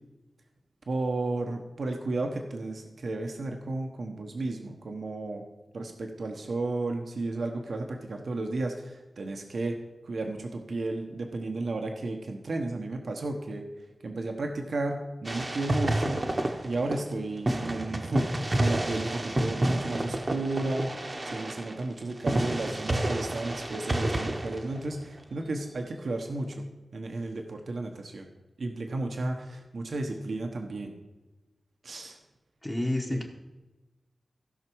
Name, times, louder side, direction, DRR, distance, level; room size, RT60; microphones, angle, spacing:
voice 1, 0.9-5.4 5.7-9.8 10.0-13.6 14.0-16.2 16.6-20.9 21.2-26.6 26.9-28.3 28.6-30.9 31.8-32.2 33.1-33.2, right 2 dB, 75° right, 3 dB, 1.1 m, -33 dB
sound 1, 15.2-17.1 17.5-25.2, right 1 dB, 35° right, 1.0 m, -30 dB
voice 2, 32.6-33.3, left 1 dB, 15° left, 0 dB, 1.0 m, -29 dB
15.5 x 5.9 x 4.7 m, 1.2 s
wide cardioid pair, 115°, 0 cm